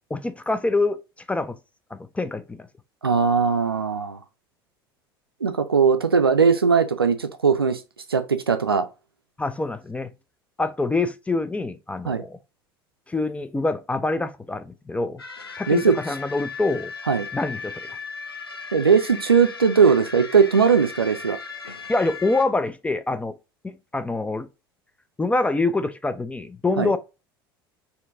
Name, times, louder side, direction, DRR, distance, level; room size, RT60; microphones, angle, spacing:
voice 1, 0.1-1.0 1.3-1.6 1.9-2.7 9.4-10.1 10.6-12.4 13.1-15.2 15.6-16.9 17.3-17.9 21.9-23.3 23.6-24.5 25.2-27.0, left 3 dB, 10° left, 0.4 m, -25 dB
voice 2, 3.0-4.2 5.4-7.8 8.1-8.9 12.1-12.2 15.7-16.0 17.1-17.3 18.7-21.4 26.8-26.9, right 5 dB, 85° right, 0.4 m, -19 dB
sound 1, 15.2-22.5, left 5 dB, 85° left, 0.6 m, -37 dB
4.3 x 2.8 x 3.6 m
figure-of-eight pair, 70°, 12 cm